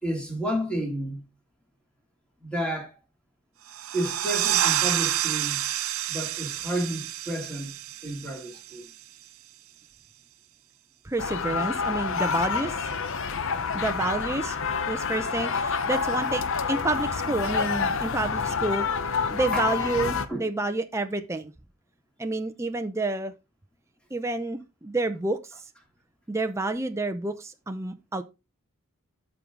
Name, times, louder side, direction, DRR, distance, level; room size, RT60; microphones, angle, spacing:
voice 1, 0.0-1.2 2.4-3.0 3.9-5.7 6.1-7.7 8.0-8.9 17.5-17.6 19.5-19.7 20.3-20.5, right 1 dB, 5° left, 2.7 m, -31 dB
sound 1, 3.7-9.0, right 12 dB, 65° right, 0.7 m, -29 dB
voice 2, 11.0-12.8 13.7-14.6 14.9-16.4 16.7-18.9 19.3-21.5 22.2-23.3 24.1-25.4 26.3-28.2, right 2 dB, 15° right, 0.5 m, -29 dB
sound 2, 11.2-20.3, left 5 dB, 60° left, 0.8 m, -28 dB
13.0 x 4.7 x 3.8 m
head